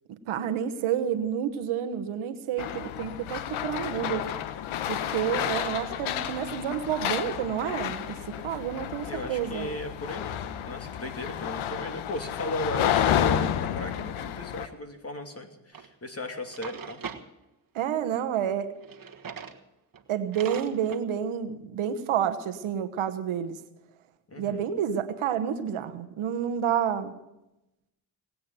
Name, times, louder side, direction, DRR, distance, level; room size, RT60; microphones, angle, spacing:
voice 1, 0.3-4.3 4.9-8.2 8.4-9.7 17.7-18.7 20.1-23.6 24.4-27.1, right 9 dB, 85° right, 9 dB, 1.2 m, -29 dB
sound 1, 2.6-14.7, left 10 dB, 90° left, 1.0 m, -31 dB
voice 2, 9.1-10.4 10.6-17.0 24.3-24.6, left 1 dB, 30° left, 5 dB, 2.8 m, -36 dB
Drawer open or close, 15.7-15.9 16.4-17.2 18.8-19.6 19.9-20.0 20.3-21.0, right 7 dB, 45° right, 1.5 m, -40 dB
19.0 x 8.6 x 8.9 m, 0.92 s
supercardioid pair, 50°, 48 cm